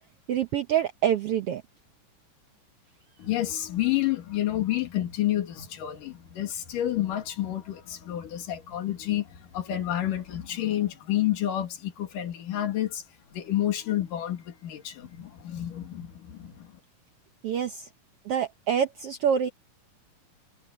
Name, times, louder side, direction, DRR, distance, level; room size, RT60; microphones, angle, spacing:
voice 1, 0.3-1.6 17.4-17.9 18.2-19.5, right 9 dB, 75° right, 1.3 m, -26 dB
voice 2, 3.2-13.0 13.3-16.8, left 13 dB, 80° left, 3.9 m, -29 dB
omnidirectional pair, 3.8 m